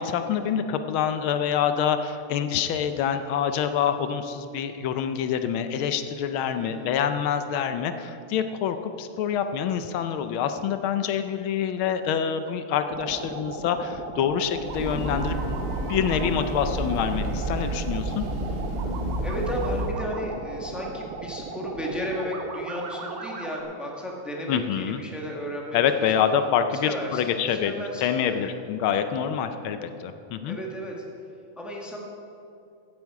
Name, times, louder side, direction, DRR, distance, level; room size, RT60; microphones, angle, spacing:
voice 1, 0.0-15.6 15.9-18.3 24.5-25.0 25.7-27.7 28.0-30.6, left 8 dB, 80° left, 9 dB, 1.5 m, -26 dB
voice 2, 6.6-6.9 19.2-26.3 26.8-28.5 30.5-31.0 31.6-32.0, equal, ahead, -1 dB, 1.3 m, -34 dB
sound 1, 12.8-23.6, right 4 dB, 55° right, 1.1 m, -37 dB
Breathing / Train, 14.5-20.1, right 1 dB, 30° right, 1.4 m, -30 dB
15.5 x 8.6 x 4.7 m, 2.7 s
omnidirectional pair, 2.3 m